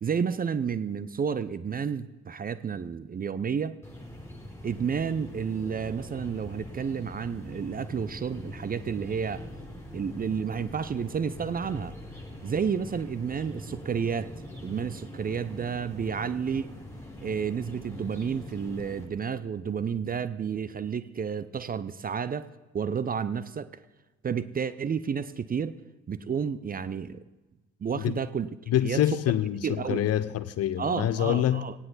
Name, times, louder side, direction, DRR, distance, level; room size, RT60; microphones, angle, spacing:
voice 1, 0.0-3.8 4.6-9.5 9.9-11.9 12.4-14.3 14.6-16.7 17.2-23.8 24.2-25.8 26.1-27.2 27.8-28.5 28.8-29.0 29.6-30.0 30.8-31.7, right 6 dB, 25° right, 0.7 m, -31 dB
sound 1, 3.8-19.0, left 1 dB, 5° left, 6.5 m, -43 dB
voice 2, 28.7-31.6, left 12 dB, 45° left, 0.9 m, -26 dB
18.0 x 17.0 x 4.0 m
figure-of-eight pair, 50°, 35 cm